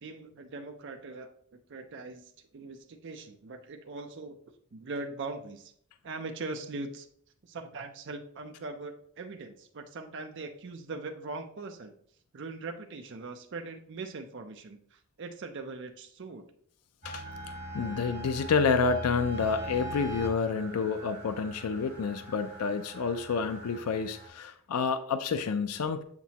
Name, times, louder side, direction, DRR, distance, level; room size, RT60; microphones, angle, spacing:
voice 1, 0.0-4.4 4.7-5.7 6.0-7.1 7.4-11.9 12.3-16.4, right 3 dB, 55° right, 5 dB, 0.5 m, -41 dB
sound 1, 17.0-24.3, right 1 dB, 50° left, 2.9 m, -41 dB
voice 2, 17.7-26.0, left 5 dB, 90° left, 10 dB, 0.4 m, -29 dB
7.2 x 5.9 x 2.8 m, 0.66 s
head